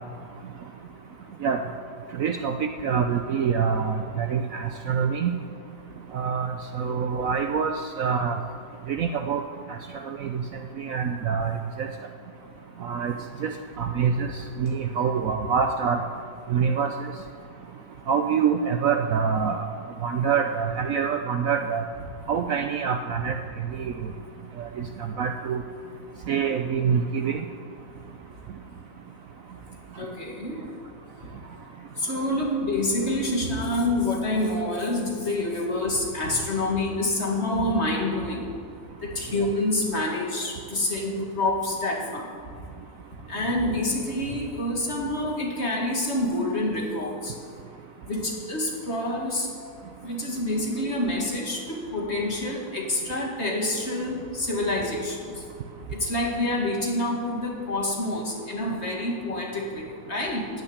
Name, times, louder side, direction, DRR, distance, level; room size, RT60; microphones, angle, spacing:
voice 1, 2.2-5.3 6.1-8.4 8.9-9.4 9.7-10.4 10.8-11.9 12.8-13.1 13.4-13.5 13.8-14.3 14.6-16.0 16.5-17.1 18.1-19.7 20.0-21.8 22.3-23.4 23.7-23.9 24.6-24.9 25.2-25.6 26.3-27.4, right 6 dB, 65° right, 6 dB, 0.9 m, -25 dB
voice 2, 30.0-30.6 32.0-38.5 39.0-42.3 43.3-47.3 48.1-49.5 50.0-55.4 55.9-60.5, left 1 dB, 40° left, -1 dB, 2.3 m, -27 dB
14.5 x 6.8 x 9.7 m, 2.4 s
omnidirectional pair, 1.8 m